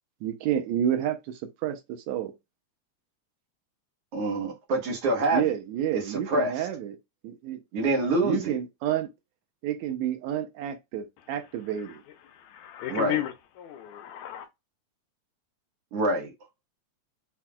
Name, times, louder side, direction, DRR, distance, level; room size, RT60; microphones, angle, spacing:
voice 1, 0.2-2.3 5.3-7.0 7.2-7.6 8.2-9.1 9.6-12.0, right 10 dB, 80° right, 2.0 m, -30 dB
voice 2, 4.1-5.4 5.9-6.7 7.7-8.5 12.9-13.2 15.9-16.3, right 2 dB, 60° right, 2.0 m, -26 dB
voice 3, 12.3-14.5, left 13 dB, 85° left, 1.9 m, -34 dB
5.9 x 2.3 x 2.2 m
omnidirectional pair, 3.3 m